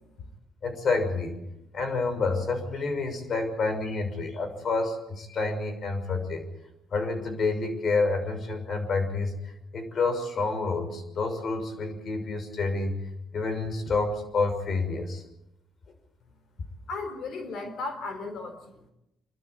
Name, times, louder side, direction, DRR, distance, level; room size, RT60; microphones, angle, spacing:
voice 1, 0.6-1.3 1.7-6.5 6.9-12.9 13.3-15.2, left 3 dB, 55° left, 7 dB, 6.2 m, -28 dB
voice 2, 16.9-18.9, left 3 dB, 70° left, 7 dB, 3.9 m, -36 dB
28.0 x 12.5 x 8.8 m, 0.88 s
cardioid pair, 90°, 0 cm